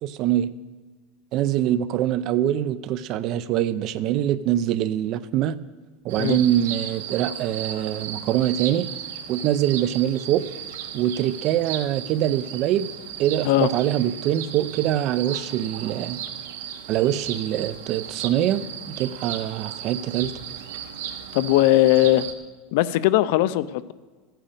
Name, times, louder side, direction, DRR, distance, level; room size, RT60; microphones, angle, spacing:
voice 1, 0.0-0.5 1.3-5.6 6.0-8.9 9.3-10.4 10.9-12.9 13.2-16.2 16.9-18.6 19.0-20.3, right 11 dB, 40° right, 16 dB, 0.6 m, -24 dB
sound 1, 6.1-22.3, right 9 dB, 85° right, 1.2 m, -35 dB
voice 2, 21.3-22.3 22.7-23.9, left 15 dB, 65° left, 16 dB, 0.5 m, -19 dB
14.5 x 9.2 x 6.7 m, 1.4 s
supercardioid pair, 160°, 0 cm